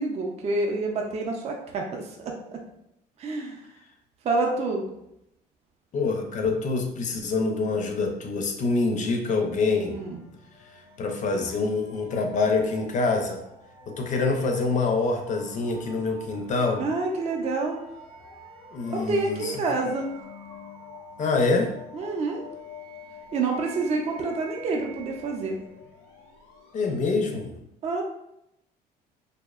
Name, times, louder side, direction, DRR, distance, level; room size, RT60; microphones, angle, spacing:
voice 1, 0.0-2.6 3.2-3.6 4.2-4.8 9.9-10.2 16.8-17.8 18.9-20.1 21.9-22.4 23.3-25.6 27.8-28.0, right 3 dB, 40° right, 1 dB, 0.4 m, -28 dB
voice 2, 5.9-10.0 11.0-13.4 13.9-16.9 18.7-19.5 21.2-21.7 26.7-27.5, left 3 dB, 45° left, 3 dB, 0.5 m, -25 dB
sound 1, 9.8-27.3, left 2 dB, 90° left, 0.7 m, -47 dB
2.6 x 2.1 x 2.3 m, 0.81 s
cardioid pair, 110°, 17 cm